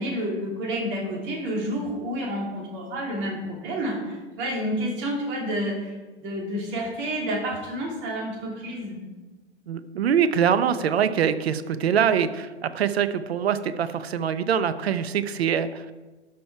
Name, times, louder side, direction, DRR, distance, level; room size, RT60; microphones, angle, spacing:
voice 1, 0.0-9.0, equal, 35° right, -1 dB, 3.1 m, -29 dB
voice 2, 9.7-15.9, right 8 dB, 65° right, 13 dB, 0.8 m, -24 dB
12.5 x 6.0 x 4.7 m, 1.2 s
figure-of-eight pair, 105°, 34 cm